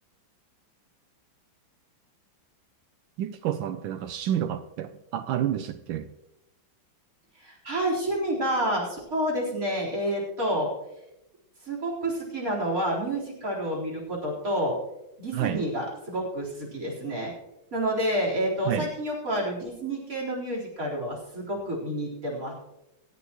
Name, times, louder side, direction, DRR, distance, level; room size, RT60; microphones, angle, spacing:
voice 1, 3.2-6.1 15.3-15.6 18.6-18.9, right 10 dB, 80° right, 10 dB, 1.4 m, -29 dB
voice 2, 7.4-10.7 11.7-14.7 15.2-17.3 17.7-22.5, right 1 dB, 45° right, -3 dB, 4.6 m, -29 dB
18.5 x 13.5 x 3.0 m, 0.90 s
omnidirectional pair, 2.2 m